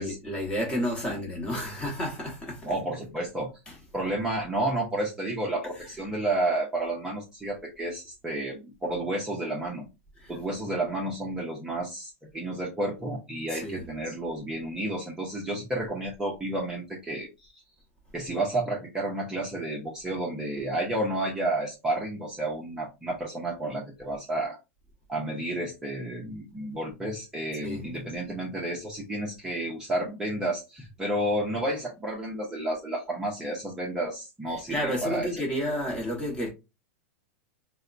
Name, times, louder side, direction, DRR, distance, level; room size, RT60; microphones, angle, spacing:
voice 1, 0.0-2.8 3.7-3.9 5.7-6.1 10.2-10.4 13.5-13.9 27.6-27.9 34.5-36.5, equal, 15° left, 1.1 m, -32 dB
voice 2, 2.6-3.5 3.9-9.8 10.3-17.5 18.1-24.6 25.1-35.4, right 1 dB, 10° right, 0.6 m, -31 dB
4.2 x 2.1 x 2.4 m
supercardioid pair, 155°, 8 cm